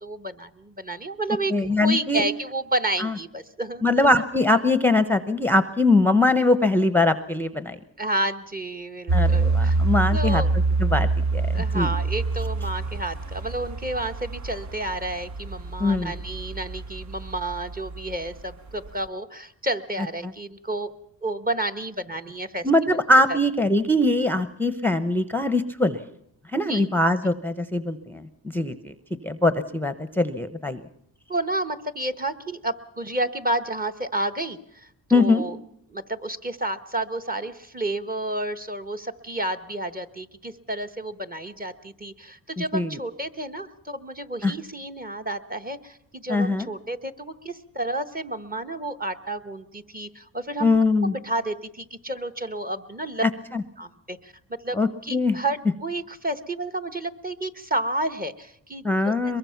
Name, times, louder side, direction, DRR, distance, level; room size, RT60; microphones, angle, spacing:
voice 1, 0.0-1.5 1.8-3.8 8.0-9.8 10.1-10.5 11.5-20.9 21.2-22.7 23.3-23.4 26.7-26.9 31.3-35.6 35.9-50.7 51.1-53.2 53.8-54.3 54.6-54.8 55.0-59.1, right 1 dB, 20° right, 6 dB, 1.2 m, -30 dB
voice 2, 1.5-2.2 3.0-3.1 3.8-7.8 9.1-10.4 10.8-11.9 15.8-16.1 22.6-26.0 26.5-28.2 28.5-28.9 29.2-30.8 35.1-35.4 42.7-43.0 44.4-44.5 46.3-46.7 50.6-51.1 53.5-53.6 54.7-55.4 58.8-59.4, left 2 dB, 5° left, 10 dB, 0.9 m, -22 dB
sound 1, 9.1-18.4 18.9-19.0, right 3 dB, 40° right, 1.0 m, -26 dB
22.5 x 22.0 x 5.8 m, 0.71 s
cardioid pair, 90°, 42 cm